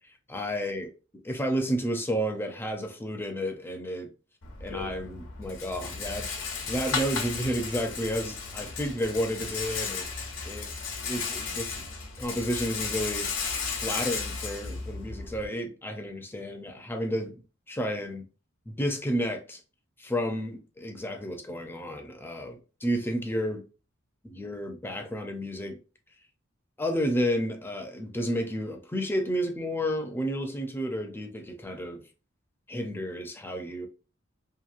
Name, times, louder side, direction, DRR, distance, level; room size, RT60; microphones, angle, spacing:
voice 1, 0.3-0.9 1.2-4.1 4.6-6.3 6.7-10.1 10.4-10.6 11.1-11.9 12.2-13.3 13.8-17.4 17.7-18.2 18.7-19.6 20.0-23.6 24.2-25.8 26.8-32.0 32.7-33.9, equal, 10° left, 0.4 m, -31 dB
Rattle, 4.4-15.5, left 5 dB, 85° left, 0.7 m, -34 dB
2.9 x 2.5 x 2.4 m
head